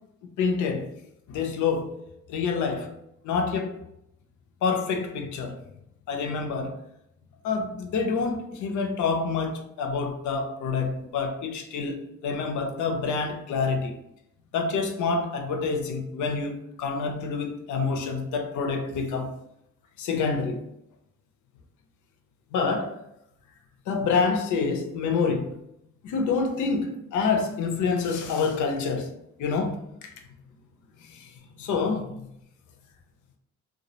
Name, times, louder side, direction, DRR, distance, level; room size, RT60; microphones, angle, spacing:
voice 1, 0.4-0.9 1.3-1.9 2.3-2.9 3.2-3.8 4.6-5.6 6.1-6.7 7.4-14.0 14.5-19.3 20.0-20.6 22.5-23.0 23.9-25.5 26.0-29.1 29.4-30.1 31.1-31.3 31.6-32.2, left 4 dB, 80° left, 0.5 m, -27 dB
2.2 x 2.0 x 2.8 m
cardioid pair, 90°, 30 cm